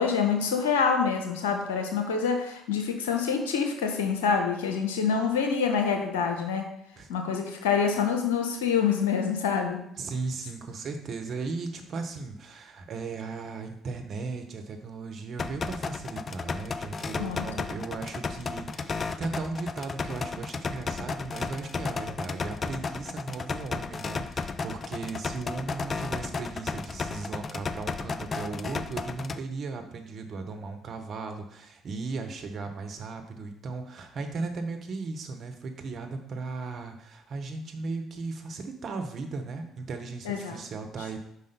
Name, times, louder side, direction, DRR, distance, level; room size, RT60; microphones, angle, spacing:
voice 1, 0.0-6.7 7.1-9.8 17.2-17.4 40.2-40.6, left 6 dB, 85° left, 4 dB, 1.1 m, -26 dB
voice 2, 10.0-41.2, right 4 dB, 55° right, 6 dB, 1.2 m, -36 dB
sound 1, 15.4-29.4, left 4 dB, 40° left, 0.5 m, -34 dB
5.5 x 4.9 x 5.3 m, 0.78 s
hypercardioid pair, 55°, 0 cm